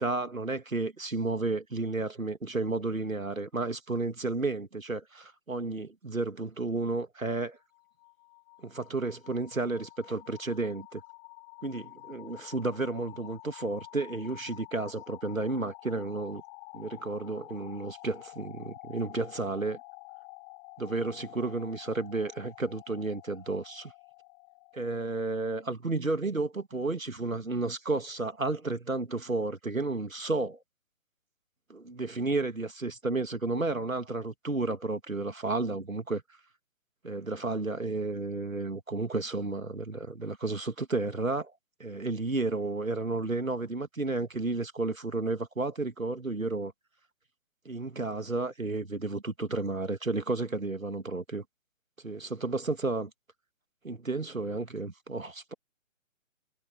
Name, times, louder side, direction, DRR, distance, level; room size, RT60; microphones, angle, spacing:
voice 1, 0.0-7.6 8.6-11.0 11.6-16.4 16.7-19.8 20.8-23.9 24.7-30.6 31.7-36.2 37.0-41.5 41.8-46.7 47.6-51.4 52.0-53.1 53.8-55.5, right 3 dB, 80° right, 2.6 m, -32 dB
sound 1, 7.6-25.5, left 40 dB or more, 5° left, 0.7 m, -50 dB
figure-of-eight pair, 135°, 40 cm